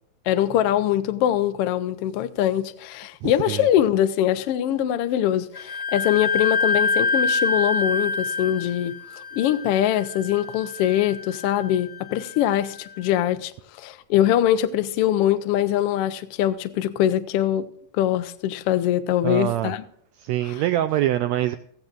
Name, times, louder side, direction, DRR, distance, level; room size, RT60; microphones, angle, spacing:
voice 1, 0.3-9.0 9.4-13.5 13.8-17.7 17.9-19.8, left 11 dB, 85° left, 1.3 m, -23 dB
voice 2, 3.2-3.7 19.2-19.7 20.2-21.6, right 13 dB, 85° right, 1.5 m, -24 dB
Wind instrument woodwind instrument, 5.6-13.0, left 4 dB, 55° left, 0.4 m, -27 dB
16.5 x 14.5 x 2.5 m
omnidirectional pair, 3.7 m